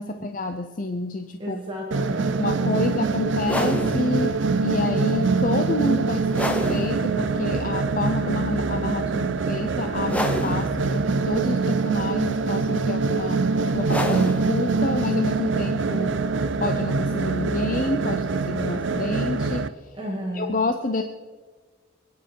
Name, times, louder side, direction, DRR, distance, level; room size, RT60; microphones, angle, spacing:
voice 1, 0.0-1.6 2.4-16.2 16.6-19.9 20.3-21.0, left 2 dB, 40° left, 7 dB, 0.6 m, -29 dB
voice 2, 1.4-3.4 19.9-20.6, equal, 25° right, -4 dB, 2.4 m, -34 dB
sound 1, 1.9-19.7, right 4 dB, 70° right, 0.6 m, -24 dB
sound 2, 3.3-18.7, equal, 5° left, 0.9 m, -34 dB
25.0 x 9.5 x 4.6 m, 1.4 s
head